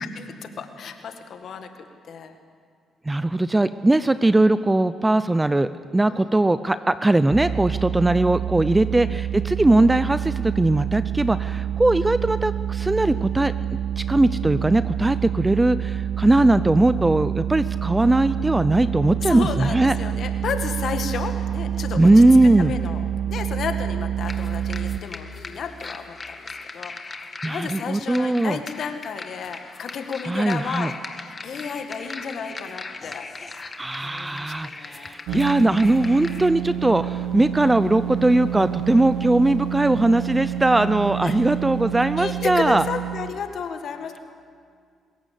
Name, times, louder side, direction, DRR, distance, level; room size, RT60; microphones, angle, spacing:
voice 1, 0.2-1.7 2.0-2.3 6.1-6.3 8.7-8.9 19.2-33.3 34.0-35.2 41.2-41.4 42.2-44.2, left 6 dB, 65° left, 6 dB, 1.9 m, -33 dB
voice 2, 3.1-13.5 14.0-19.9 22.0-22.7 26.9-27.0 27.4-28.6 30.3-30.9 33.8-42.8, right 2 dB, 15° right, 13 dB, 0.6 m, -20 dB
sound 1, 7.3-25.0, right 10 dB, 45° right, 0.9 m, -27 dB
sound 2, 24.2-36.5, left 3 dB, 35° left, 1.8 m, -39 dB
sound 3, 35.3-43.3, right 11 dB, 85° right, 0.7 m, -29 dB
21.5 x 17.5 x 8.4 m, 2.1 s
supercardioid pair, 60°, 0 cm